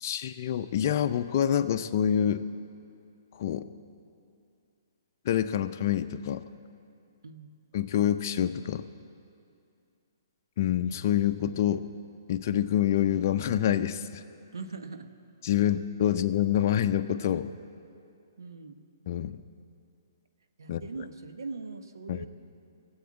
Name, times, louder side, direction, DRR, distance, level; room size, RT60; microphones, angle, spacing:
voice 1, 0.0-2.4 3.3-3.7 5.2-6.4 7.7-8.9 10.6-11.9 12.3-14.2 15.4-17.5 19.1-19.4 20.7-20.8 22.1-22.3, left 10 dB, 50° left, 8 dB, 0.5 m, -27 dB
voice 2, 14.5-15.1 18.4-18.8 20.6-22.3, right 4 dB, 90° right, 7 dB, 1.0 m, -41 dB
16.5 x 8.0 x 8.6 m, 2.5 s
hypercardioid pair, 140°, 2 cm